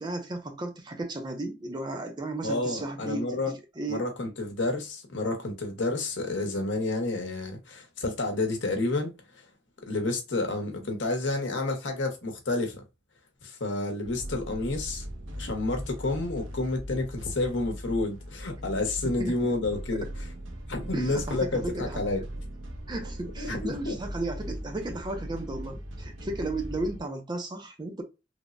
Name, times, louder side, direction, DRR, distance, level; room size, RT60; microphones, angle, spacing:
voice 1, 0.0-4.0 19.0-19.4 20.9-22.0 22.9-28.0, right 2 dB, 25° right, 0.4 m, -34 dB
voice 2, 2.4-3.5 3.9-9.1 9.9-12.8 13.4-15.0 15.4-20.0 20.7-22.2 23.4-23.6 23.8-24.0, left 2 dB, 70° left, 0.8 m, -30 dB
sound 1, 14.0-27.0, equal, 85° right, 0.7 m, -39 dB
3.2 x 2.0 x 2.4 m
head